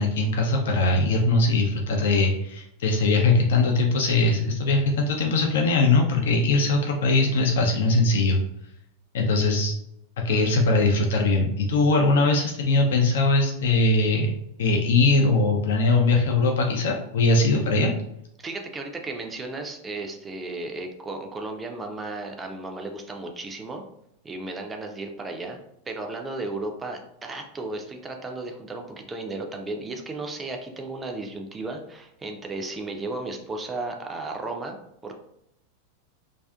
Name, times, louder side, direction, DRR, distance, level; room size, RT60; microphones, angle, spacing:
voice 1, 0.0-8.4 9.1-9.8 10.2-14.3 14.6-17.9, left 3 dB, 60° left, 1 dB, 0.3 m, -21 dB
voice 2, 18.4-23.8 24.2-25.6 25.9-35.1, right 2 dB, 15° right, 3 dB, 0.3 m, -34 dB
2.4 x 2.3 x 2.2 m, 0.78 s
figure-of-eight pair, 90°, 0 cm